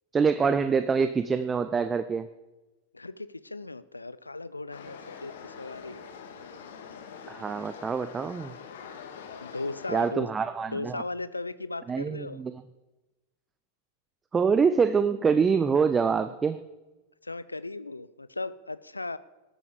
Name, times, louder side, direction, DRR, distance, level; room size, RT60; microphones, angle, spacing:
voice 1, 0.1-2.3 7.3-8.5 9.9-11.0 11.9-12.6 14.3-16.6, right 5 dB, 20° right, 11 dB, 0.7 m, -25 dB
voice 2, 2.9-6.0 9.4-10.3 10.7-12.4 17.2-19.2, left 3 dB, 80° left, 15 dB, 0.7 m, -37 dB
sound 1, 4.7-10.1, left 6 dB, 60° left, 2.1 m, -44 dB
19.5 x 13.5 x 5.3 m, 1.1 s
figure-of-eight pair, 90°, 0 cm